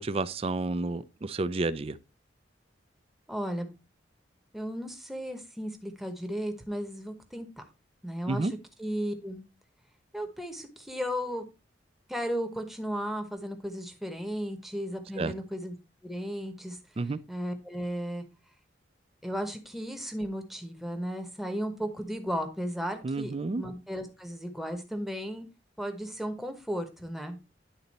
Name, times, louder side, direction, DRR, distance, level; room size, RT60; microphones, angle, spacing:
voice 1, 0.0-2.0 8.3-8.5 15.2-15.3 17.0-17.2 23.0-23.6, right 3 dB, 30° right, 0.4 m, -30 dB
voice 2, 3.3-3.7 4.5-7.5 8.0-8.5 8.8-9.4 10.1-11.5 12.1-15.8 16.0-16.8 17.3-18.2 19.2-25.5 25.8-27.4, equal, ahead, 1.0 m, -35 dB
10.0 x 4.0 x 4.1 m
head